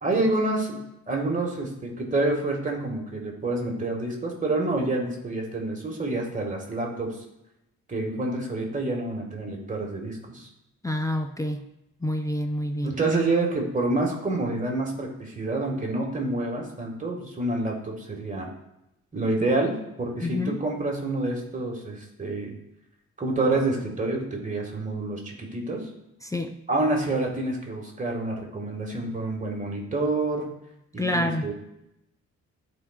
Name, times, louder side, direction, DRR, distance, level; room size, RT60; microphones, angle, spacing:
voice 1, 0.0-0.8 1.1-7.2 7.9-10.5 12.8-18.5 19.1-22.5 23.2-25.9 26.7-30.5 30.9-31.5, right 2 dB, 25° right, 0 dB, 1.8 m, -28 dB
voice 2, 10.8-11.6 12.0-12.9 20.2-20.6 26.3-26.6 31.0-31.5, left 1 dB, 10° left, 5 dB, 0.5 m, -27 dB
11.5 x 4.7 x 2.4 m, 0.87 s
cardioid pair, 90°, 30 cm